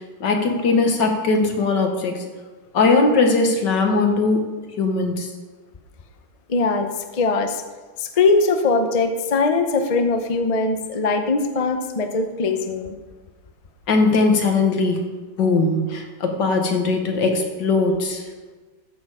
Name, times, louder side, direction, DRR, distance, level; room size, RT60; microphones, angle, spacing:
voice 1, 0.2-2.2 2.7-4.4 4.8-5.3 13.9-15.0 15.4-18.2, left 3 dB, 85° left, 3 dB, 2.0 m, -19 dB
voice 2, 6.5-7.6 8.0-13.0, left 3 dB, 40° left, 6 dB, 0.5 m, -21 dB
13.5 x 6.6 x 4.9 m, 1.3 s
omnidirectional pair, 1.9 m